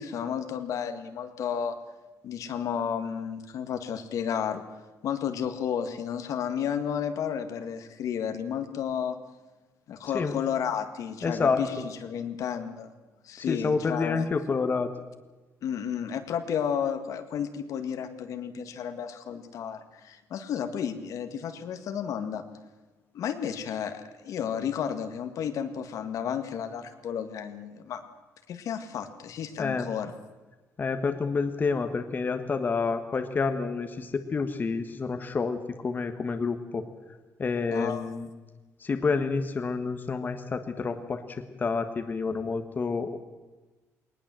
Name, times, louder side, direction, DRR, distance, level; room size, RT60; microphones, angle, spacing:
voice 1, 0.0-1.7 2.2-4.6 5.0-9.2 9.9-11.7 12.0-12.9 13.3-14.3 15.6-22.4 23.1-28.0 28.5-30.1 37.7-38.1, left 8 dB, 65° left, 8 dB, 1.8 m, -32 dB
voice 2, 10.0-10.4 11.2-11.6 13.4-14.9 29.6-29.9 30.8-36.8 37.4-38.3 38.8-43.2, left 4 dB, 30° left, 7 dB, 1.4 m, -29 dB
20.0 x 19.5 x 7.6 m, 1.2 s
cardioid pair, 120°, 6 cm